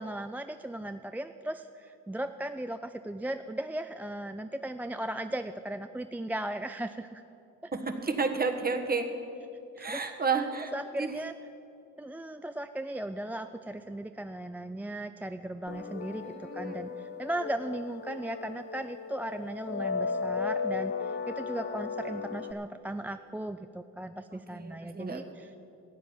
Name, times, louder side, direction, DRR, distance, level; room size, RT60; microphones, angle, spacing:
voice 1, 0.0-7.2 7.6-7.7 9.8-10.0 10.7-11.3 12.0-25.5, right 1 dB, 5° right, 8 dB, 0.3 m, -37 dB
voice 2, 7.7-9.1 9.8-11.1 16.2-16.8 24.3-25.3, right 4 dB, 30° right, 6 dB, 1.4 m, -32 dB
sound 1, 15.7-22.5, left 5 dB, 35° left, 0.8 m, -35 dB
14.5 x 8.4 x 7.2 m, 2.7 s
cardioid pair, 90°, 30 cm